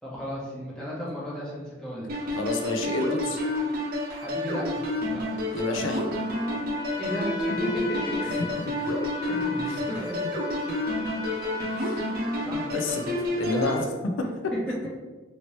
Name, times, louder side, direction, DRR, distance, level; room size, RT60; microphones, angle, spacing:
voice 1, 0.0-2.1 4.1-4.8 5.1-5.2 7.0-7.8 9.3-10.2 11.6-11.8 12.4-12.7 13.5-13.8, equal, 5° left, -7 dB, 0.9 m, -34 dB
sound 1, 2.1-13.8, left 1 dB, 50° right, 0.6 m, -29 dB
voice 2, 2.4-3.4 5.5-6.1 8.2-8.9 9.6-9.8 11.8-12.0 12.7-13.8, left 2 dB, 85° left, 3 dB, 0.4 m, -30 dB
Trumpet, 6.1-12.6, left 6 dB, 20° left, 0.4 m, -38 dB
2.9 x 2.8 x 3.0 m, 1.3 s
head